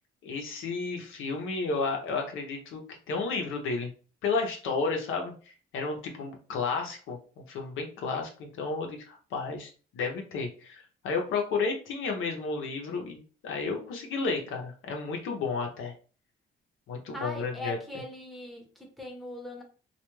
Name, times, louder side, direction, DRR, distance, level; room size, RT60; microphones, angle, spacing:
voice 1, 0.2-3.9 4.2-5.3 5.7-7.2 7.5-15.9 16.9-17.8, left 4 dB, 80° left, 2 dB, 0.7 m, -32 dB
voice 2, 17.1-19.6, left 2 dB, ahead, 0 dB, 0.8 m, -40 dB
2.3 x 2.2 x 3.0 m, 0.38 s
cardioid pair, 90°, 20 cm